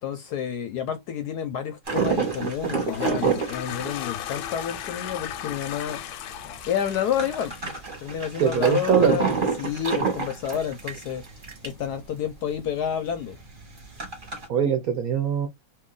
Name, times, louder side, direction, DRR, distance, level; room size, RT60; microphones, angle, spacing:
voice 1, 0.0-6.0 6.7-7.5 8.0-11.2 11.6-13.4, left 9 dB, 70° left, 1.0 m, -29 dB
sound 1, 1.9-5.9 6.2-6.3 6.5-11.9 12.2-12.3 12.5-12.7 13.2-14.5, right 5 dB, 30° right, 1.1 m, -28 dB
Toilet flush, 2.5-8.8, left 12 dB, 85° left, 1.4 m, -36 dB
voice 2, 8.4-9.2 14.5-15.5, right 7 dB, 65° right, 0.9 m, -22 dB
2.9 x 2.7 x 3.7 m
omnidirectional pair, 2.1 m